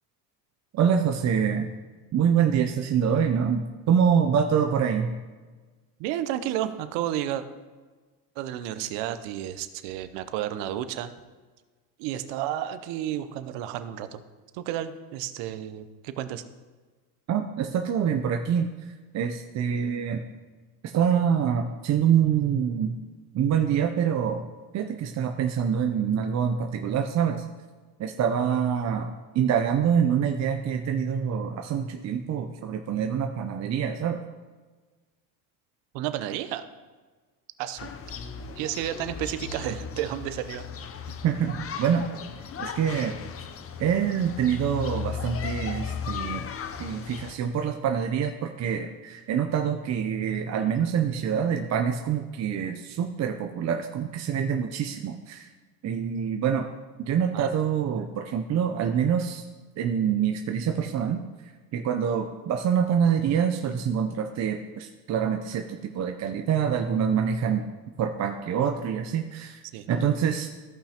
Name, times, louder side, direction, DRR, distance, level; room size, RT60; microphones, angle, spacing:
voice 1, 0.7-1.7 2.1-5.2 17.3-20.2 20.9-23.0 23.3-24.5 24.7-27.5 28.0-34.2 41.2-42.1 42.6-43.2 43.8-46.4 46.8-55.5 55.8-56.7 57.0-59.4 59.8-67.6 68.0-69.6 69.9-70.5, right 8 dB, 35° right, 4 dB, 0.6 m, -26 dB
voice 2, 6.0-7.4 8.4-11.1 12.0-14.2 14.5-16.4 35.9-36.6 37.6-37.9 38.6-40.7 57.3-57.5 69.7-69.9, right 12 dB, 65° right, 12 dB, 0.8 m, -31 dB
sound 1, 37.8-47.4, left 7 dB, 30° left, 0.6 m, -36 dB
14.5 x 5.6 x 2.9 m, 1.3 s
supercardioid pair, 90°, 48 cm